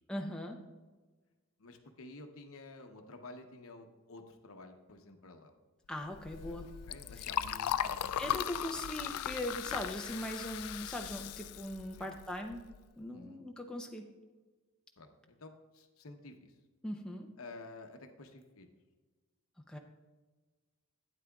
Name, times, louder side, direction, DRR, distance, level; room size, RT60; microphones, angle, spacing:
voice 1, 0.1-0.6 5.9-6.7 8.2-12.6 13.0-14.1 16.8-17.3 19.7-19.8, left 1 dB, 5° left, 1 dB, 0.6 m, -40 dB
voice 2, 1.6-5.5 6.4-6.6 6.9-8.3 12.0-12.1 13.1-13.4 15.0-16.5 17.4-18.7, left 2 dB, 65° left, 5 dB, 0.8 m, -51 dB
Liquid, 6.1-12.8, left 10 dB, 85° left, 0.3 m, -38 dB
12.0 x 8.9 x 2.3 m, 1.3 s
head